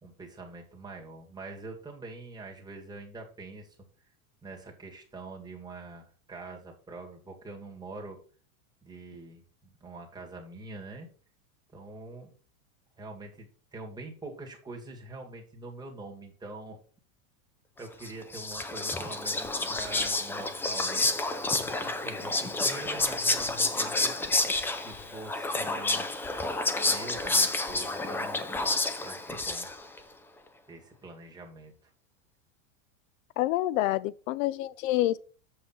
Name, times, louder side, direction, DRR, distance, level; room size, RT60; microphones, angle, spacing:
voice 1, 0.0-3.8 4.4-8.2 8.8-11.1 11.7-12.4 13.0-16.8 17.8-21.1 21.5-24.2 24.8-26.1 26.8-28.4 29.0-29.7 30.7-31.9, right 2 dB, 10° right, 2.1 m, -44 dB
Whispering, 18.0-30.0, left 2 dB, 5° left, 0.3 m, -29 dB
voice 2, 33.4-35.2, left 15 dB, 70° left, 0.5 m, -27 dB
7.8 x 5.4 x 4.4 m
supercardioid pair, 130°, 42 cm